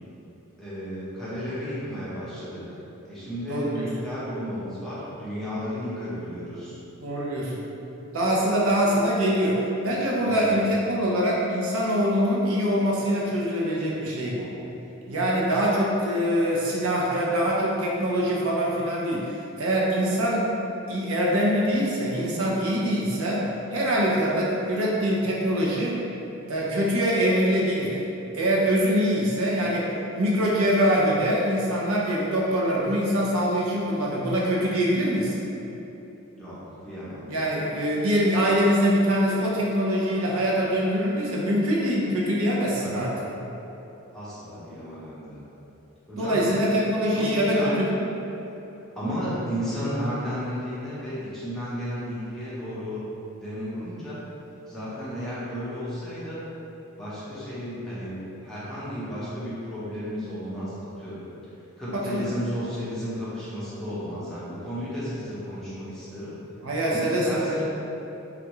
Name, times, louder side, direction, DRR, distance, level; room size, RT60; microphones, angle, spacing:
voice 1, 0.6-2.8 3.0-6.8 10.2-10.5 36.4-36.6 36.8-37.2 42.8-43.1 44.1-45.4 46.1-46.5 47.1-47.8 48.7-53.0 53.3-54.2 54.7-56.4 57.0-61.2 61.8-66.3 66.9-67.6, equal, ahead, -12 dB, 0.7 m, -33 dB
voice 2, 3.5-3.9 7.0-7.5 8.1-14.5 15.1-19.3 19.6-20.5 20.9-23.4 23.7-26.0 26.5-28.0 28.3-29.9 30.1-35.4 37.3-43.1 46.2-48.0 61.9-62.3 66.6-67.6, equal, 75° right, -4 dB, 0.6 m, -24 dB
3.5 x 2.3 x 2.9 m, 3.0 s
head